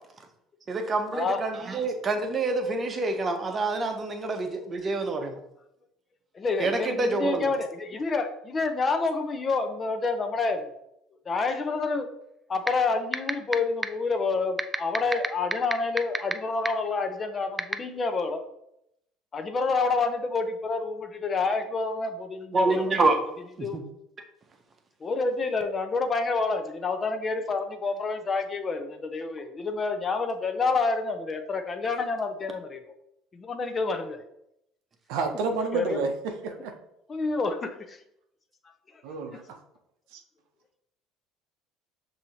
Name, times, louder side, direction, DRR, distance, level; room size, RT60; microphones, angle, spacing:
voice 1, 0.7-5.4 6.6-7.5 22.5-23.2 23.7-23.8, right 3 dB, 35° right, 0.8 m, -27 dB
voice 2, 6.3-10.7 11.3-12.1 12.5-18.4 19.3-22.8 23.6-23.8 25.0-32.9 33.3-34.2 35.7-36.1 37.1-38.0, left 4 dB, 35° left, 0.6 m, -28 dB
sound 1, 12.7-12.8 13.1-13.5 13.8-13.9 14.6-16.3 16.7-16.8 17.6-17.7, right 2 dB, 15° right, 0.3 m, -24 dB
voice 3, 35.1-36.7 39.0-39.6 40.1-40.2, right 4 dB, 80° right, 0.6 m, -30 dB
6.0 x 2.8 x 2.8 m
supercardioid pair, 85°, 0 cm